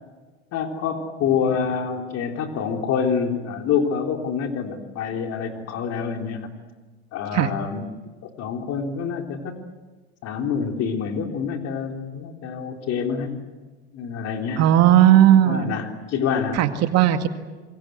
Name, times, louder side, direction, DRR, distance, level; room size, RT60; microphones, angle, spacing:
voice 1, 0.5-6.5 7.1-7.9 8.2-9.5 10.2-13.4 13.9-14.7 15.5-16.6, left 6 dB, 50° left, 4 dB, 3.8 m, -26 dB
voice 2, 14.6-15.7 16.5-17.3, right 12 dB, 50° right, 8 dB, 2.1 m, -16 dB
27.5 x 23.5 x 8.1 m, 1.3 s
hypercardioid pair, 90°, 32 cm